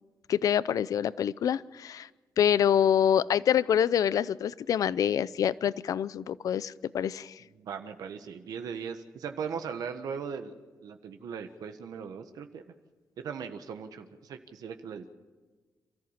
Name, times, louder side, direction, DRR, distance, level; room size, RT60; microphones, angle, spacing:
voice 1, 0.3-2.1 2.4-7.4, left 9 dB, 65° left, 18 dB, 0.6 m, -26 dB
voice 2, 7.6-10.5 10.8-12.6 13.2-15.1, right 6 dB, 75° right, 7 dB, 1.4 m, -38 dB
28.0 x 14.0 x 7.3 m, 1.4 s
wide cardioid pair, 145°, 6 cm